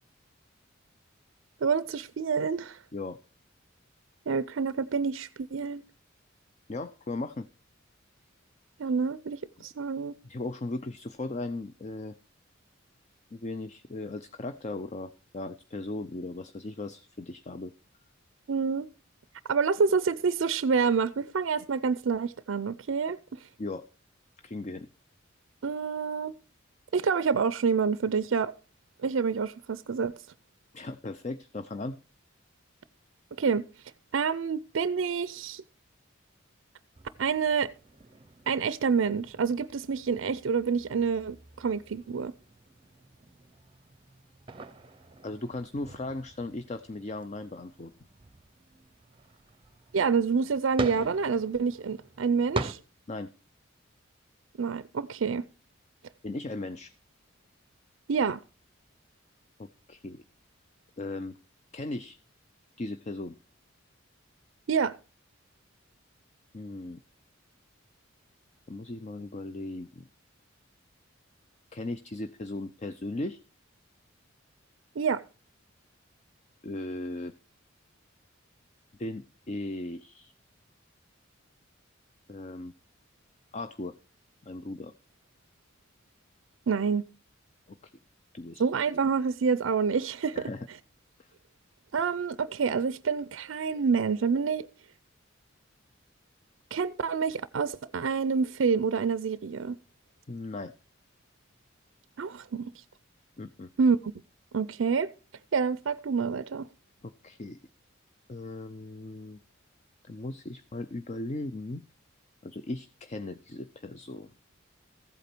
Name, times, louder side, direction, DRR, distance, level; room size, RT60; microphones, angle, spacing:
voice 1, 1.6-2.8 4.3-5.8 8.8-10.1 18.5-18.9 19.5-23.2 25.6-26.3 26.9-28.5 29.0-30.1 33.4-33.7 34.1-35.6 37.2-37.7 38.5-42.3 49.9-52.8 54.6-55.4 58.1-58.4 64.7-65.0 75.0-75.2 86.7-87.1 88.6-90.5 91.9-94.7 96.7-99.8 102.2-102.7 103.8-104.0 104.5-105.1 105.5-106.7, right 5 dB, 70° right, 0.5 m, -27 dB
voice 2, 6.7-7.5 10.3-12.2 13.3-17.7 23.6-23.8 24.4-24.9 30.7-32.0 45.2-47.9 53.1-53.3 56.2-56.9 59.6-60.2 61.0-61.4 61.7-62.2 62.8-63.4 66.5-67.0 68.7-70.1 71.7-73.4 76.6-77.3 79.0-80.3 82.3-82.7 83.5-83.9 84.4-84.9 87.7-87.9 88.3-88.6 90.4-90.7 91.2-91.3 100.3-100.7 103.4-103.7 107.0-107.6 108.3-109.4 110.0-111.8 112.4-114.3, left 2 dB, 35° left, 0.5 m, -37 dB
sound 1, 36.9-52.7, right 2 dB, 25° right, 0.7 m, -43 dB
14.5 x 8.3 x 4.4 m
head